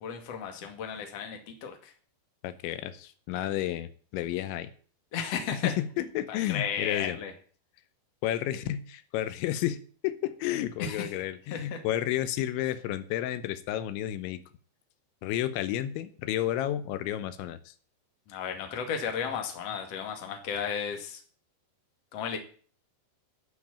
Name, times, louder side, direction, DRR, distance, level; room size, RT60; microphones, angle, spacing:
voice 1, 0.0-1.9 5.1-5.7 6.3-7.3 10.8-11.1 11.5-11.8 18.3-21.2 22.1-22.4, left 7 dB, 45° left, 4 dB, 2.3 m, -34 dB
voice 2, 2.4-4.7 5.5-7.2 8.2-9.8 10.0-14.4 15.2-17.7, left 12 dB, 90° left, 13 dB, 3.2 m, -31 dB
11.5 x 6.3 x 8.7 m, 0.43 s
omnidirectional pair, 5.3 m